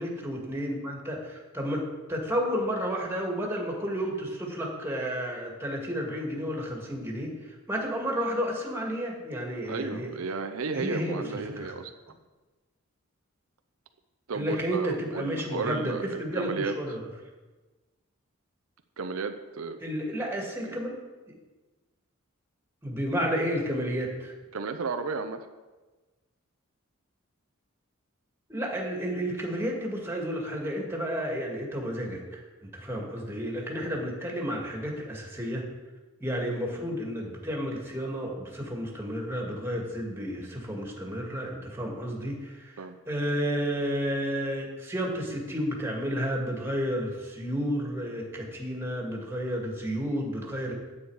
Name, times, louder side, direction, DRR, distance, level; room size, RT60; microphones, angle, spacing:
voice 1, 0.0-1.8 2.1-10.1 10.7-11.2 11.6-11.7 14.3-17.0 19.8-21.0 22.8-24.3 28.5-32.4 32.7-35.6 36.2-50.7, equal, 10° right, -1 dB, 1.9 m, -31 dB
voice 2, 9.6-11.9 14.3-16.8 19.0-19.8 20.7-20.8 24.5-25.5 33.8-34.0 42.8-42.9, right 4 dB, 85° right, 8 dB, 0.6 m, -33 dB
9.6 x 8.2 x 4.7 m, 1.2 s
head